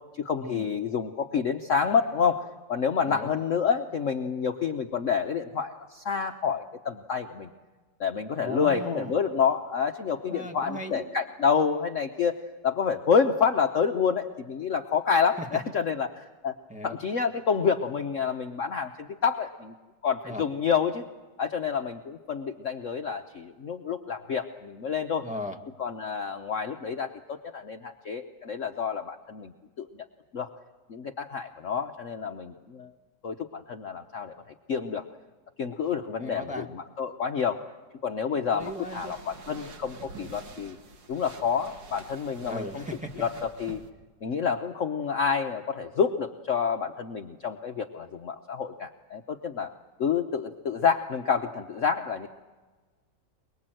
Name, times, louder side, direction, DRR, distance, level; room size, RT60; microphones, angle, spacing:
voice 1, 0.1-7.5 8.0-12.4 12.6-16.5 16.8-19.7 20.0-21.0 21.4-25.3 25.8-29.5 29.8-29.9 30.3-30.5 30.9-32.9 33.2-34.3 34.7-35.0 35.6-37.6 38.0-40.8 41.1-42.8 43.2-43.8 44.2-49.7 50.0-52.3, left 6 dB, 55° left, 5 dB, 1.1 m, -28 dB
voice 2, 8.4-9.1 10.3-11.0 15.4-15.5 16.7-17.0 20.2-20.5 25.2-25.6 36.2-36.6 38.5-39.1 42.4-43.2, left 1 dB, 5° right, 1 dB, 1.7 m, -37 dB
sound 1, 38.6-43.9, right 4 dB, 80° right, 2.4 m, -47 dB
23.5 x 23.0 x 7.7 m, 1.3 s
omnidirectional pair, 2.0 m